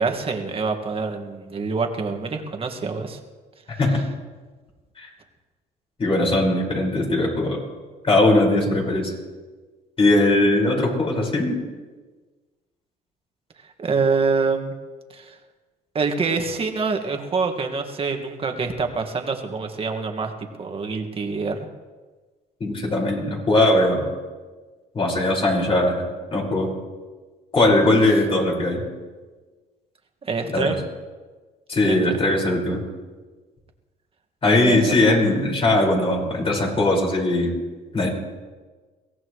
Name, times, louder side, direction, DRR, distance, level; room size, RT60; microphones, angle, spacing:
voice 1, 0.0-3.2 13.8-14.7 15.1-15.4 15.9-21.6 30.2-30.8 31.8-32.0 34.5-35.1, right 4 dB, 35° right, 4 dB, 1.9 m, -25 dB
voice 2, 6.0-7.6 8.0-9.1 10.0-11.6 22.6-24.1 24.9-26.0 26.3-26.7 27.5-28.8 30.5-30.8 31.7-32.8 34.4-37.5 37.9-38.1, left 2 dB, 35° left, -2 dB, 5.4 m, -20 dB
23.0 x 17.0 x 3.2 m, 1.3 s
cardioid pair, 110°, 17 cm